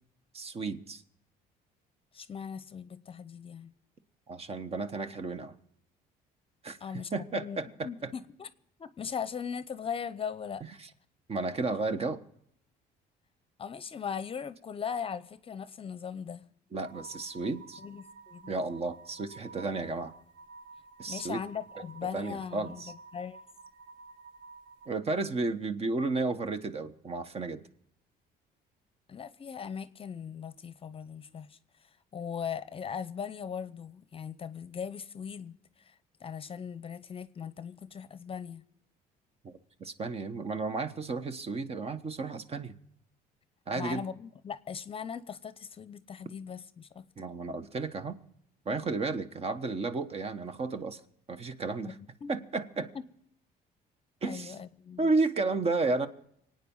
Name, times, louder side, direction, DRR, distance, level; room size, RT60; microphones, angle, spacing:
voice 1, 0.3-1.0 4.3-5.6 6.6-6.8 7.1-7.9 11.3-12.2 16.7-17.8 18.5-20.1 21.0-21.4 22.1-22.9 24.9-27.6 39.4-39.5 39.8-42.7 43.7-44.0 47.2-48.2 48.6-51.0 51.3-51.9 52.3-52.9 54.2-54.5 55.0-56.1, right 3 dB, 35° right, 1.2 m, -32 dB
voice 2, 2.1-3.7 6.8-7.6 7.8-8.5 8.8-10.6 13.6-16.5 17.8-18.5 21.1-23.4 29.1-38.7 43.7-47.1 51.8-52.3 52.9-53.0 54.2-55.1, left 7 dB, 35° left, 0.8 m, -39 dB
sound 1, 16.8-25.0, right 4 dB, 55° right, 2.5 m, -51 dB
25.0 x 9.2 x 5.5 m
cardioid pair, 110°, 17 cm